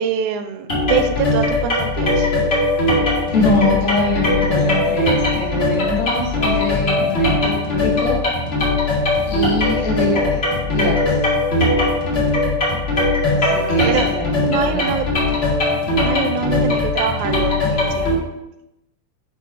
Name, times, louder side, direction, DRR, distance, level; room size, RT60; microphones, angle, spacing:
voice 1, 0.0-2.3 13.5-14.1 14.5-15.1 16.0-18.1, right 8 dB, 80° right, 8 dB, 1.9 m, -24 dB
sound 1, 0.7-18.2, left 2 dB, 30° left, 1.2 m, -19 dB
voice 2, 3.3-8.2 9.3-10.4 10.6-11.2 13.3-14.9, left 2 dB, 65° left, -3 dB, 3.0 m, -23 dB
7.6 x 5.2 x 4.2 m, 0.91 s
omnidirectional pair, 3.5 m